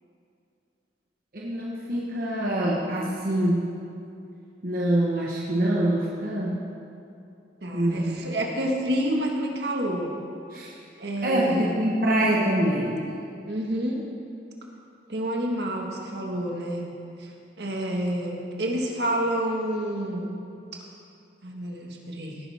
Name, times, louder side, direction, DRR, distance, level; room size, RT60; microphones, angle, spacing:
voice 1, 1.3-3.7 4.6-6.6 7.7-8.2 10.5-10.7 11.2-13.1, right 1 dB, 55° right, -4 dB, 1.3 m, -25 dB
voice 2, 7.6-10.1 11.0-11.8 13.5-14.0 15.1-16.8 17.2-17.3 17.6-20.4 21.4-22.4, right 1 dB, 70° right, 0 dB, 1.7 m, -28 dB
18.0 x 10.5 x 3.6 m, 2.6 s
head